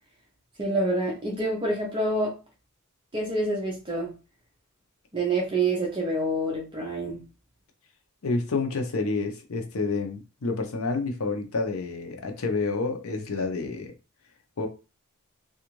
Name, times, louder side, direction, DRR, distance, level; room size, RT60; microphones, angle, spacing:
voice 1, 0.6-2.4 3.1-4.1 5.1-7.2, right 2 dB, 20° right, 0.6 m, -27 dB
voice 2, 8.2-13.9 14.6-14.7, left 3 dB, 65° left, 0.6 m, -29 dB
2.5 x 2.4 x 3.0 m
head